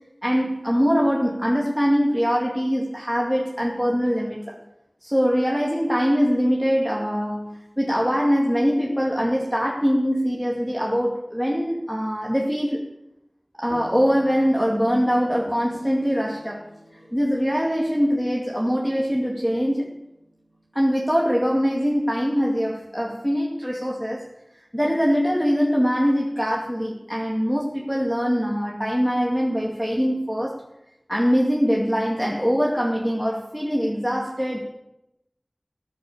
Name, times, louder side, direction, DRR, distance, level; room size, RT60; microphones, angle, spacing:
voice 1, 0.2-4.6 5.0-12.8 13.6-19.9 20.7-24.3 24.7-30.6 31.1-34.7, equal, ahead, -2 dB, 2.2 m, -23 dB
sound 1, 13.7-22.5, equal, 45° left, 3.6 m, -49 dB
19.0 x 8.4 x 7.1 m, 0.91 s
wide cardioid pair, 40°, 0 cm